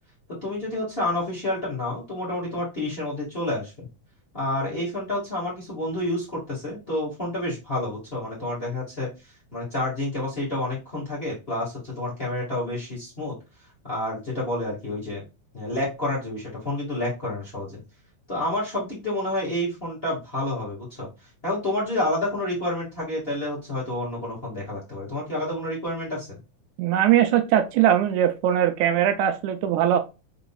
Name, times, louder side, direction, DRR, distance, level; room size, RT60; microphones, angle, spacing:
voice 1, 0.4-3.9 4.3-9.1 9.5-13.3 13.8-15.2 15.5-17.8 18.3-21.1 21.4-26.4, left 1 dB, 25° left, -5 dB, 1.5 m, -29 dB
voice 2, 26.8-30.0, right 10 dB, 80° right, 8 dB, 1.9 m, -20 dB
5.0 x 3.9 x 2.3 m, 0.27 s
omnidirectional pair, 3.5 m